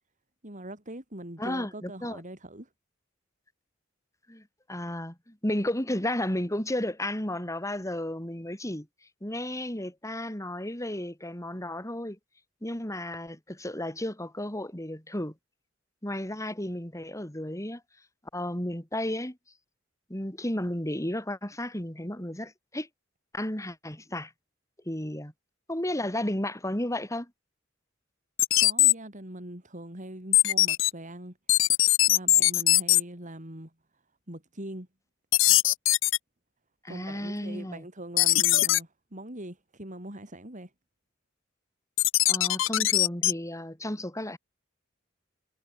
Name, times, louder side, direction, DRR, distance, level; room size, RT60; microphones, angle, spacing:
voice 1, 0.4-2.7 28.6-31.4 32.1-33.7 34.3-34.9 36.9-40.7, right 1 dB, 40° right, 5.6 m, -42 dB
voice 2, 1.4-2.2 4.3-4.4 4.7-8.9 9.2-12.2 12.6-15.3 16.0-17.8 18.3-19.4 20.1-22.9 23.3-24.3 24.9-25.3 25.7-27.3 36.8-37.9 42.3-44.4, left 1 dB, 15° left, 3.8 m, -33 dB
sound 1, 28.4-28.9 30.3-30.9 31.5-33.0 35.3-36.2 38.2-38.8 42.0-43.3, left 16 dB, 80° left, 0.9 m, -21 dB
head